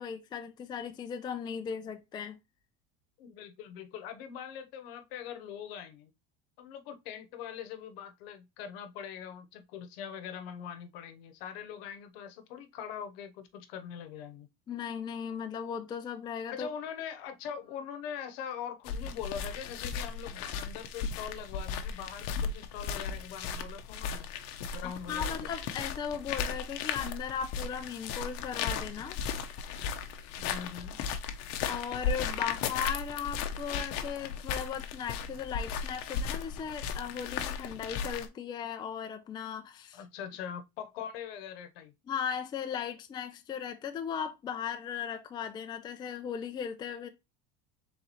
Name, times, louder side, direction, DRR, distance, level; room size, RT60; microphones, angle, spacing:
voice 1, 0.0-2.4 14.7-16.7 24.8-29.2 31.6-40.0 42.1-47.1, left 7 dB, 15° left, 0.4 m, -37 dB
voice 2, 3.2-6.1 6.6-14.5 16.5-24.3 24.7-25.5 30.4-31.0 39.9-41.9, left 8 dB, 80° left, 0.9 m, -42 dB
sound 1, 18.9-38.3, left 6 dB, 55° left, 0.7 m, -36 dB
3.8 x 3.0 x 4.1 m
cardioid pair, 145°, 30 cm